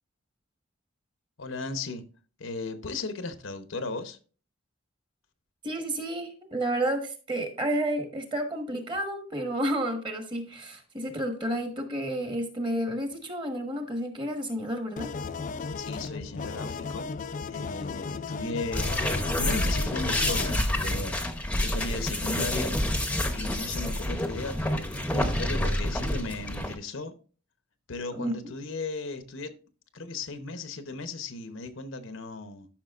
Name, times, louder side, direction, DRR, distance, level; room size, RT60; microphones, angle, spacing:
voice 1, 1.4-2.0 2.4-4.2 15.8-17.1 17.5-21.2 21.6-22.8 23.3-27.1 27.9-29.5 29.9-32.7, left 3 dB, 70° left, 0.9 m, -36 dB
voice 2, 5.6-15.1 28.1-28.5, right 1 dB, 25° right, 1.3 m, -31 dB
sound 1, 15.0-20.6, left 4 dB, 40° left, 0.3 m, -35 dB
sound 2, 18.7-26.8, left 1 dB, 5° left, 0.8 m, -28 dB
12.0 x 5.9 x 2.5 m
head